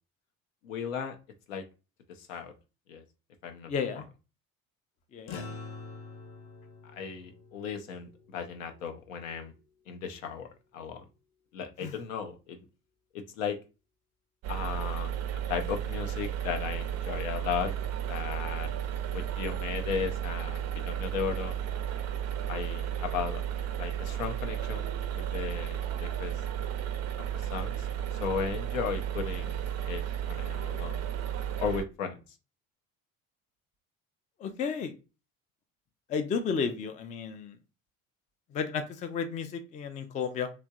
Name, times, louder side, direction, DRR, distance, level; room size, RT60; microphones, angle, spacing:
voice 1, 0.6-1.2 1.5-1.6 2.2-2.5 2.9-3.0 3.4-3.7 5.3-5.5 6.9-9.5 9.9-10.5 10.7-11.0 11.5-12.6 13.1-13.6 14.5-15.1 15.5-17.7 18.1-18.7 19.1-21.6 22.5-23.4 23.8-24.9 25.1-26.3 27.3-27.9 28.2-30.0 30.3-31.0 31.6-32.2, left 7 dB, 70° left, 6 dB, 0.6 m, -35 dB
voice 2, 3.7-4.1 5.1-5.4 11.8-11.9 34.4-34.9 36.1-37.6 38.5-40.5, left 6 dB, 20° left, 9 dB, 0.3 m, -32 dB
sound 1, 5.3-9.9, left 4 dB, 40° left, 0.7 m, -46 dB
sound 2, 14.4-31.8, right 10 dB, 40° right, 0.5 m, -33 dB
2.9 x 2.5 x 2.2 m, 0.30 s
figure-of-eight pair, 55°, 41 cm